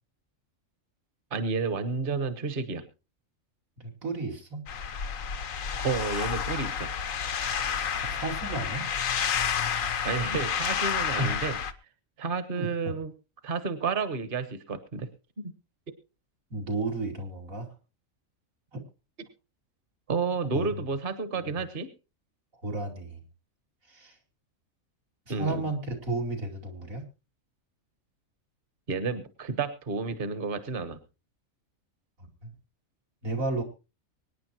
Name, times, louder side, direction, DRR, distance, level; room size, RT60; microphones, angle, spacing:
voice 1, 1.3-2.8 5.8-6.9 10.0-11.5 12.2-13.1 13.4-15.1 15.4-15.5 20.1-21.9 25.3-25.6 28.9-31.0, right 4 dB, 45° right, 11 dB, 1.3 m, -31 dB
voice 2, 3.8-4.7 8.0-9.0 11.2-11.4 12.5-12.9 16.5-17.7 18.7-18.8 20.5-20.7 21.3-21.5 22.6-23.2 23.9-24.2 25.3-27.1 32.2-32.5 33.2-33.6, right 2 dB, 80° right, 0 dB, 3.1 m, -33 dB
sound 1, 4.7-11.7, left 7 dB, 80° left, 1.4 m, -30 dB
24.5 x 9.9 x 2.9 m, 0.31 s
omnidirectional pair, 1.4 m